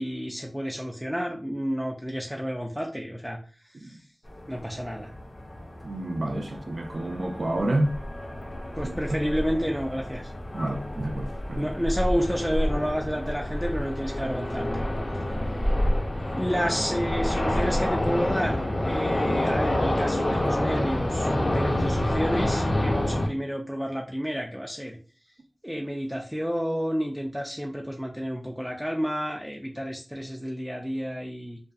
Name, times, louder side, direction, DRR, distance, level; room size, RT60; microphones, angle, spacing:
voice 1, 0.0-3.4 3.8-3.9 4.5-5.1 8.8-10.3 11.6-14.8 16.2-21.3 21.5-25.0 25.6-31.6, equal, ahead, 0.3 m, -30 dB
sound 1, 4.3-23.3, left 1 dB, 60° left, 0.5 m, -28 dB
voice 2, 5.8-8.0 8.8-8.9 10.5-11.7, right 1 dB, 75° right, 0.4 m, -29 dB
2.5 x 2.2 x 2.3 m
wide cardioid pair, 65°, 0 cm